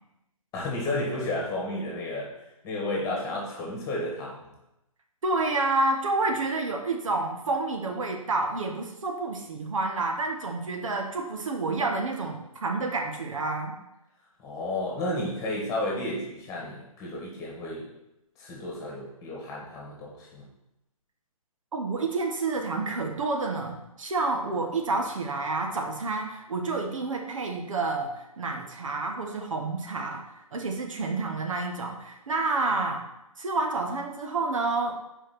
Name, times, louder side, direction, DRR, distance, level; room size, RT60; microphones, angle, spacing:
voice 1, 0.5-2.3 2.6-4.5 14.4-17.9 18.4-20.4, left 1 dB, 15° left, -3 dB, 1.7 m, -32 dB
voice 2, 5.2-13.7 21.7-30.2 30.5-33.0 33.4-34.9, right 3 dB, 60° right, 2 dB, 1.2 m, -29 dB
5.1 x 4.8 x 6.0 m, 0.87 s
figure-of-eight pair, 140°, 19 cm